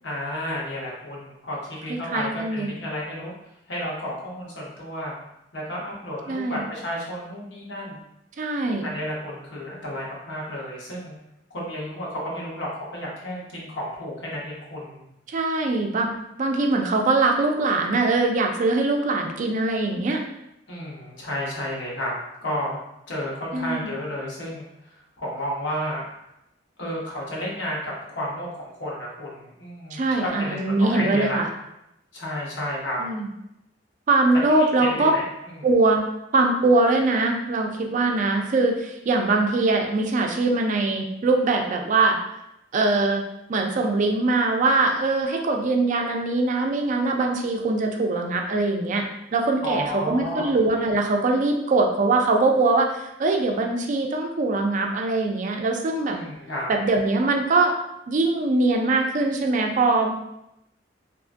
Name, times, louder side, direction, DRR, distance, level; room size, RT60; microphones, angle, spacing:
voice 1, 0.0-3.3 3.7-5.1 5.5-8.0 8.8-11.2 11.5-15.0 20.7-22.1 22.4-22.8 23.1-26.0 26.8-31.4 32.1-33.0 34.6-35.7 49.6-50.5 56.1-56.7, equal, 90° left, -4 dB, 0.9 m, -32 dB
voice 2, 2.1-2.7 6.3-6.7 8.4-8.8 15.3-16.1 16.4-20.2 23.5-23.9 29.9-31.5 33.0-33.3 34.1-35.1 35.6-36.0 36.3-42.2 42.7-43.2 43.5-49.0 49.3-56.2 56.7-57.7 58.1-60.1, right 3 dB, 45° right, 3 dB, 0.4 m, -22 dB
2.8 x 2.4 x 2.5 m, 0.83 s
head